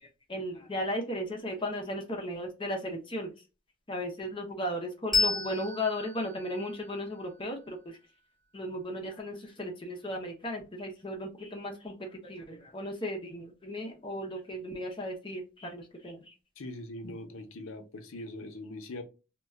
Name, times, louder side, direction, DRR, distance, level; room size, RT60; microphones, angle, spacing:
voice 1, 0.0-3.3 3.9-8.0 8.5-16.3 17.0-17.2, left 1 dB, 25° left, 1 dB, 0.5 m, -36 dB
Bell, 5.1-8.2, left 4 dB, ahead, 0.9 m, -33 dB
voice 2, 16.6-19.0, left 1 dB, 70° left, 6 dB, 0.6 m, -41 dB
2.2 x 2.1 x 3.4 m, 0.31 s
head